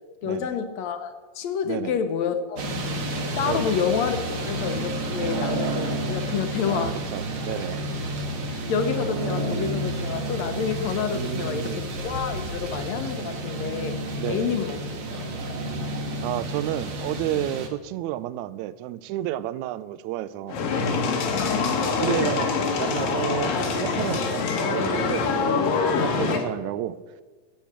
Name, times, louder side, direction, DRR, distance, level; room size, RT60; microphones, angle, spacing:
voice 1, 0.2-2.6 3.4-7.0 8.5-14.8 21.5-22.4 25.9-26.2, left 7 dB, 70° left, 1.8 m, -29 dB
voice 2, 1.6-2.0 3.4-3.7 6.7-7.8 11.1-11.8 14.2-14.6 16.2-20.6 21.8-27.0, right 13 dB, 85° right, 1.7 m, -31 dB
sound 1, 2.6-17.7, right 1 dB, 60° right, 2.6 m, -30 dB
sound 2, 20.5-26.4, left 4 dB, 90° left, 3.3 m, -25 dB
13.5 x 8.5 x 7.3 m
omnidirectional pair, 3.8 m